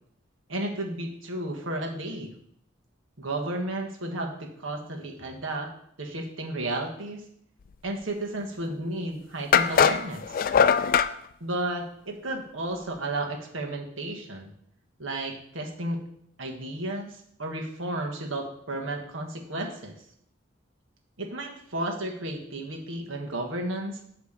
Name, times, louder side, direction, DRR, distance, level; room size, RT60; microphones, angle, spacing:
voice 1, 0.5-2.3 3.2-5.7 6.0-7.2 7.8-10.4 11.4-14.5 15.0-16.0 16.4-19.9 21.2-24.0, right 1 dB, 85° right, 2 dB, 1.4 m, -33 dB
sound 1, 8.7-8.8 9.5-11.1, left 7 dB, 45° left, 0.3 m, -21 dB
8.6 x 3.3 x 6.6 m, 0.68 s
head